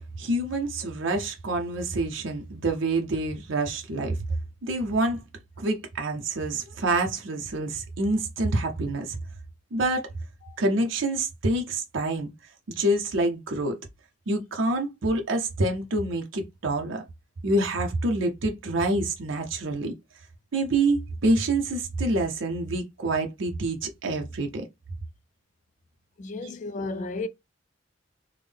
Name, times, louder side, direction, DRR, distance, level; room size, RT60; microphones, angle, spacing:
voice 1, 0.2-4.2 4.6-5.2 5.6-9.2 9.7-10.1 10.6-12.3 12.8-13.8 14.3-17.0 17.4-19.9 20.5-24.6, right 2 dB, 90° right, 0.6 m, -27 dB
voice 2, 26.2-27.3, left 3 dB, 40° left, 0.3 m, -33 dB
3.6 x 2.1 x 3.3 m
head